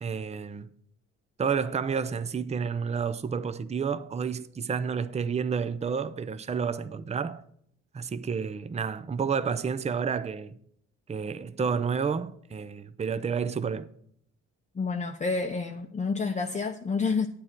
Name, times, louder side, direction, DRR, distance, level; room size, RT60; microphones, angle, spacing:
voice 1, 0.0-0.7 1.4-7.4 7.9-10.6 11.1-13.9, right 6 dB, 20° right, 0.5 m, -30 dB
voice 2, 14.7-17.3, left 4 dB, 25° left, 0.7 m, -29 dB
9.5 x 8.9 x 4.5 m
cardioid pair, 90°, 30 cm